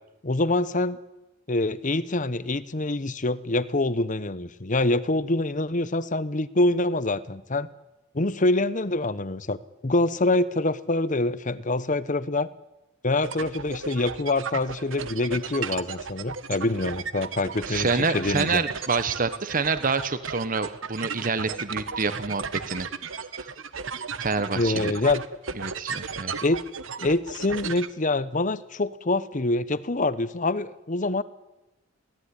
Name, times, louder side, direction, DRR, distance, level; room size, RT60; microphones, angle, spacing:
voice 1, 0.2-1.0 1.5-7.7 8.1-9.6 9.8-12.5 13.0-18.6 24.5-25.2 26.4-26.6 27.0-31.2, left 2 dB, 40° left, 15 dB, 1.0 m, -25 dB
sound 1, 13.2-27.9, right 6 dB, 75° right, 1.2 m, -35 dB
voice 2, 17.7-22.9 23.4-23.5 24.2-24.9 25.6-26.3, right 4 dB, 45° right, 12 dB, 1.2 m, -27 dB
23.0 x 16.5 x 10.0 m, 0.99 s
head